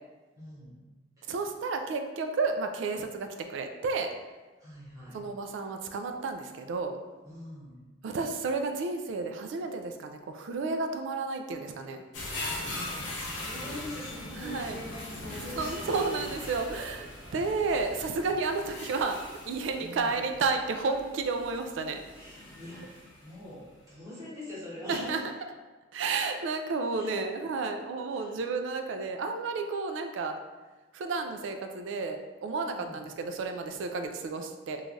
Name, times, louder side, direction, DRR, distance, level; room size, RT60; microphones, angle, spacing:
voice 1, 0.4-0.8 1.2-1.3 4.6-5.7 7.2-7.9 12.6-16.6 19.7-20.2 22.1-25.4 26.9-27.2 28.1-28.4 32.7-33.1, left 1 dB, 20° right, -9 dB, 1.0 m, -44 dB
voice 2, 1.3-4.1 5.1-7.0 8.0-12.0 14.4-14.8 15.6-17.1 17.3-19.2 19.5-22.0 24.9-25.2 25.9-30.4 30.9-34.8, right 4 dB, 70° right, 6 dB, 0.3 m, -31 dB
sound 1, 12.1-23.3 23.8-23.9, left 2 dB, 70° left, 0.6 m, -41 dB
3.1 x 2.3 x 2.5 m, 1.2 s
head